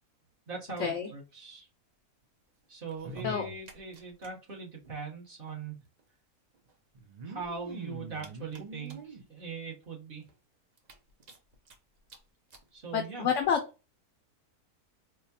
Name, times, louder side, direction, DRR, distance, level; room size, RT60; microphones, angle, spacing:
voice 1, 0.5-1.7 2.7-5.8 7.2-10.3 12.7-13.3, right 5 dB, 40° right, -2 dB, 1.0 m, -41 dB
sound 1, 2.9-4.3 4.6-4.7 4.8-4.9 6.0-6.1 6.9-9.2 9.8-9.9 10.3-10.4 10.8-11.7 12.1-12.2 12.5-12.6 13.4-13.5, right 2 dB, 75° right, 0.3 m, -44 dB
voice 2, 12.9-13.6, left 7 dB, 65° left, 4 dB, 0.8 m, -28 dB
4.4 x 2.1 x 2.7 m, 0.29 s
omnidirectional pair, 1.6 m